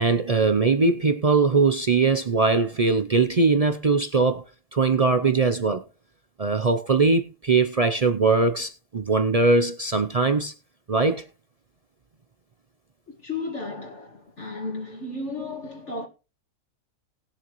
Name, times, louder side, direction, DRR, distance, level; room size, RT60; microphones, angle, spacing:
voice 1, 0.0-4.4 4.7-5.8 6.4-10.5 10.9-11.2, right 4 dB, 60° right, 0.3 m, -21 dB
voice 2, 13.1-16.1, left 3 dB, 45° left, 2.0 m, -34 dB
19.5 x 7.3 x 3.1 m
omnidirectional pair, 1.7 m